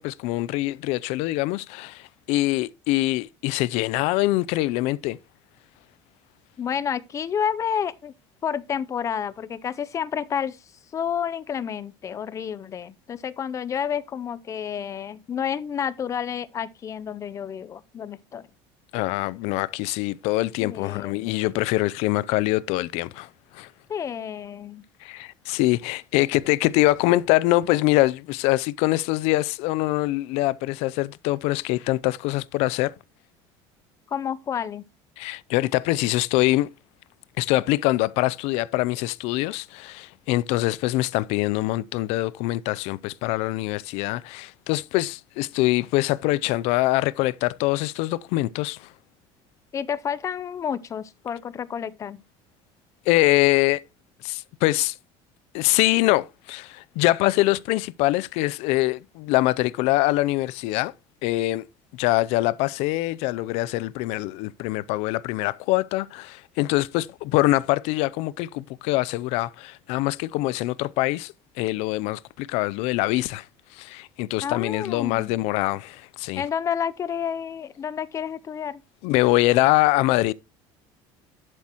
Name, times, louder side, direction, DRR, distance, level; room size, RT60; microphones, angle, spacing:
voice 1, 0.0-5.2 18.9-23.3 23.5-23.7 25.0-32.9 35.2-36.7 37.4-48.9 53.1-53.8 54.2-54.9 55.5-60.9 61.2-61.6 61.9-73.4 73.7-76.4 79.0-80.3, left 18 dB, 75° left, 0.5 m, -24 dB
voice 2, 6.6-8.1 8.4-10.6 10.9-18.5 20.6-21.3 23.9-24.8 34.1-34.8 49.7-52.2 74.4-75.3 76.4-78.8, left 8 dB, 30° left, 0.6 m, -30 dB
11.0 x 7.5 x 2.9 m
cardioid pair, 150°, 11 cm